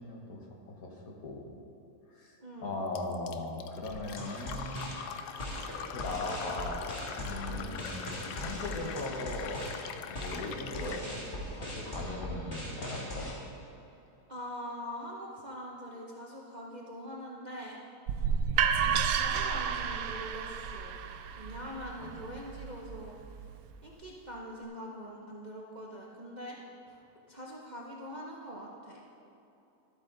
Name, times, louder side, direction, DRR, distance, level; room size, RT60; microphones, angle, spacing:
voice 1, 0.0-1.5 2.1-5.0 5.3-6.9 7.2-9.7 10.1-13.3 18.8-19.0 22.2-22.3, left 2 dB, 65° left, 0 dB, 1.7 m, -39 dB
voice 2, 2.4-2.7 7.5-7.8 14.3-17.8 18.8-20.9 21.4-23.2 23.8-26.6 27.3-29.0, equal, 40° right, -3 dB, 0.7 m, -43 dB
Fill (with liquid), 3.0-11.1, left 8 dB, 80° left, 1.1 m, -43 dB
sound 1, 3.9-13.3, equal, 30° left, 1.8 m, -40 dB
sound 2, 18.1-23.9, right 7 dB, 70° right, 1.0 m, -32 dB
12.5 x 8.3 x 3.9 m, 2.9 s
omnidirectional pair, 1.7 m